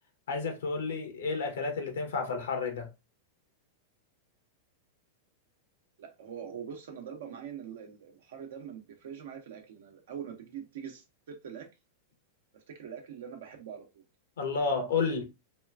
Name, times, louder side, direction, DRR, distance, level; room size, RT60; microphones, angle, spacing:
voice 1, 0.3-2.9 14.4-15.2, left 4 dB, 75° left, 0.8 m, -31 dB
voice 2, 6.0-11.7 12.5-14.0, right 8 dB, 70° right, 0.8 m, -43 dB
2.9 x 2.3 x 2.2 m
hypercardioid pair, 105°, 0 cm